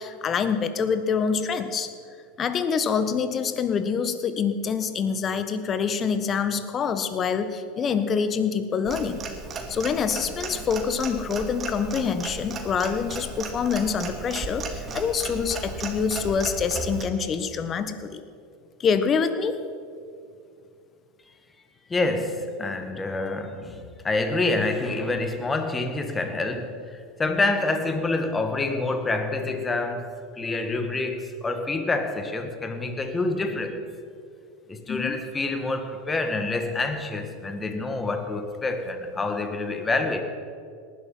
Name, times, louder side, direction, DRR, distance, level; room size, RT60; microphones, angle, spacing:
voice 1, 0.0-1.9 2.4-9.2 9.7-18.2 18.8-19.6 34.9-35.2, left 6 dB, 35° left, 10 dB, 1.3 m, -26 dB
Clock, 8.9-17.1, right 3 dB, 30° right, 2.5 m, -35 dB
voice 2, 21.9-33.9 34.7-40.2, left 2 dB, 20° left, 7 dB, 1.8 m, -27 dB
19.0 x 11.5 x 5.6 m, 2.4 s
hypercardioid pair, 90°, 0 cm